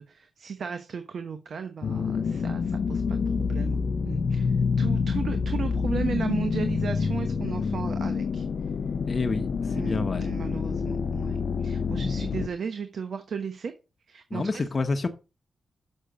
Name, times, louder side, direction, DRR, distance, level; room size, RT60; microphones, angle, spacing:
voice 1, 0.0-8.5 9.7-13.7 14.1-14.6, right 6 dB, 65° right, 1.0 m, -35 dB
sound 1, 1.8-12.5, left 5 dB, 60° left, 0.6 m, -27 dB
voice 2, 9.1-10.3 14.3-15.1, left 3 dB, 35° left, 1.1 m, -28 dB
6.6 x 6.5 x 6.8 m
wide cardioid pair, 110°, 0 cm